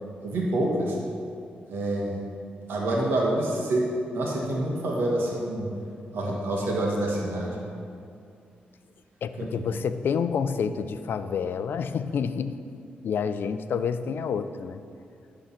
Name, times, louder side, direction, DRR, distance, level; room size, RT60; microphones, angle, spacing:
voice 1, 0.2-1.0 1.7-2.1 2.7-3.8 4.1-5.7 6.1-7.6 9.4-9.5, right 1 dB, 80° right, -2 dB, 1.7 m, -27 dB
voice 2, 9.2-12.6 13.0-14.8, left 6 dB, 70° left, 11 dB, 0.4 m, -28 dB
11.0 x 3.9 x 5.8 m, 2.4 s
cardioid pair, 65°, 4 cm